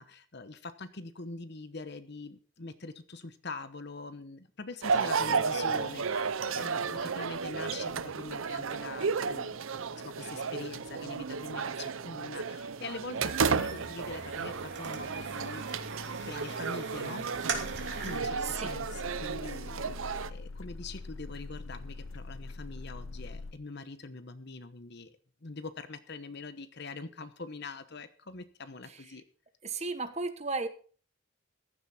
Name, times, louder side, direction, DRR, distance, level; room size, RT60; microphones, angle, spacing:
voice 1, 0.0-9.6 10.0-17.3 18.0-29.2, left 3 dB, 50° left, 12 dB, 1.0 m, -44 dB
sound 1, 4.8-20.3, right 5 dB, 70° right, 0.7 m, -33 dB
sound 2, 13.2-18.2, right 4 dB, 50° right, 2.6 m, -40 dB
sound 3, 17.5-23.5, left 3 dB, 75° left, 0.7 m, -43 dB
voice 2, 29.6-30.7, right 3 dB, 30° right, 9 dB, 1.2 m, -34 dB
14.5 x 11.5 x 4.3 m, 0.42 s
head